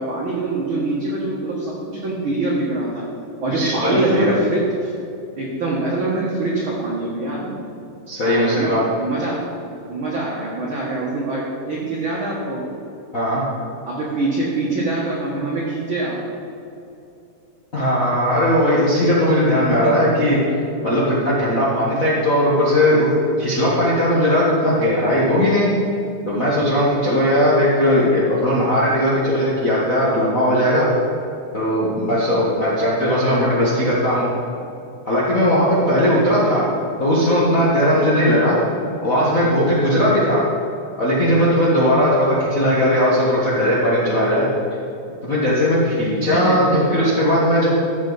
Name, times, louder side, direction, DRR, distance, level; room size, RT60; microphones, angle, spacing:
voice 1, 0.0-3.1 3.4-4.9 5.4-7.7 8.2-9.4 9.9-12.6 13.8-16.1 19.7-19.9 36.0-36.3 46.3-46.8, right 2 dB, 50° right, -5 dB, 1.7 m, -24 dB
voice 2, 3.5-4.3 8.1-8.8 13.1-13.4 17.7-20.4 20.8-23.1 23.4-25.7 26.3-30.9 31.5-34.3 35.1-36.7 37.0-38.6 39.0-40.4 41.0-44.5 45.2-46.6 46.9-47.7, equal, 45° left, -8 dB, 1.1 m, -18 dB
13.5 x 7.6 x 4.0 m, 2.7 s
omnidirectional pair, 3.8 m